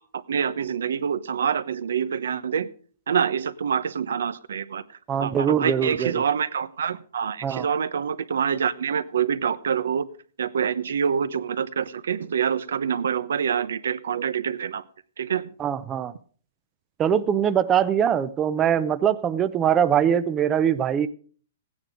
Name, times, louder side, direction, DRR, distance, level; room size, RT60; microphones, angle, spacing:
voice 1, 0.1-2.7 3.1-4.8 5.2-10.1 10.4-14.8 15.2-15.5, right 7 dB, 85° right, 15 dB, 0.9 m, -26 dB
voice 2, 5.1-6.2 7.4-7.7 15.6-16.1 17.0-21.1, right 8 dB, 15° right, 12 dB, 0.5 m, -22 dB
15.5 x 9.5 x 5.0 m, 0.44 s
hypercardioid pair, 160°, 0 cm